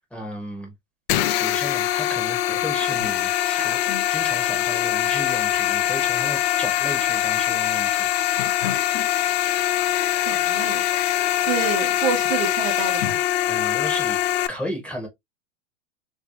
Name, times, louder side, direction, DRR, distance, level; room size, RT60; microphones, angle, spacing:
voice 1, 0.1-0.7 1.4-3.8 4.1-8.5 13.5-14.2 14.5-15.1, equal, 5° left, 1.5 m, -34 dB
sound 1, 1.1-14.5, left 13 dB, 55° left, 0.5 m, -23 dB
voice 2, 10.3-10.8 11.4-13.2, right 7 dB, 50° right, 1.1 m, -28 dB
3.3 x 3.0 x 2.7 m
hypercardioid pair, 110°, 38 cm